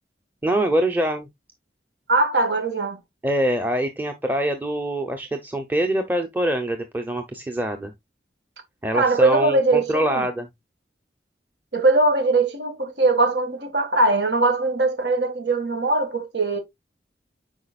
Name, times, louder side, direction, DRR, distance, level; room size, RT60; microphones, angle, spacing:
voice 1, 0.4-1.3 3.2-7.9 8.8-10.5, right 1 dB, 10° right, 0.7 m, -24 dB
voice 2, 2.1-3.0 8.9-10.3 11.7-16.6, right 2 dB, 80° right, 1.9 m, -21 dB
8.4 x 5.2 x 2.4 m
head